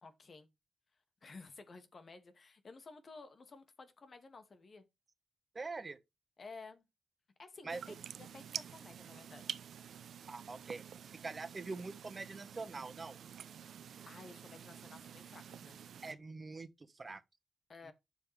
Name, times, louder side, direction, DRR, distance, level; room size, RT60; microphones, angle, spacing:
voice 1, 0.0-0.5 1.2-4.8 6.4-6.9 7.4-9.5 13.6-13.8 14.1-15.8 17.7-17.9, left 4 dB, 55° left, 2.1 m, -54 dB
voice 2, 5.5-6.0 7.6-7.8 10.3-13.2 16.0-17.2, right 3 dB, 40° right, 1.4 m, -44 dB
sound 1, 7.7-16.1, right 8 dB, 75° right, 0.7 m, -49 dB
9.8 x 7.1 x 3.4 m
supercardioid pair, 45°, 0 cm